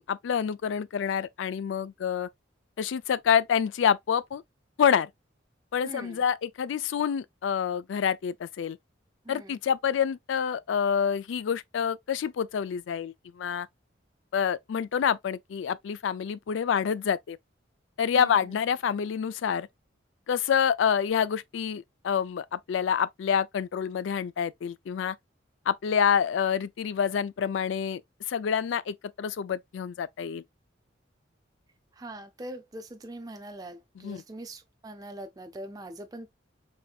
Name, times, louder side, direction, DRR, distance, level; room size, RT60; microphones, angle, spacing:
voice 1, 0.0-2.3 2.8-4.4 4.8-5.1 5.7-8.8 9.3-13.7 14.3-17.4 18.0-19.7 20.3-25.2 25.7-28.0 28.3-30.4 34.0-34.2, left 7 dB, 75° left, 0.3 m, -27 dB
voice 2, 5.8-6.2 9.2-9.6 18.1-18.6 31.9-36.3, right 1 dB, 20° right, 0.4 m, -42 dB
4.3 x 3.3 x 2.3 m
head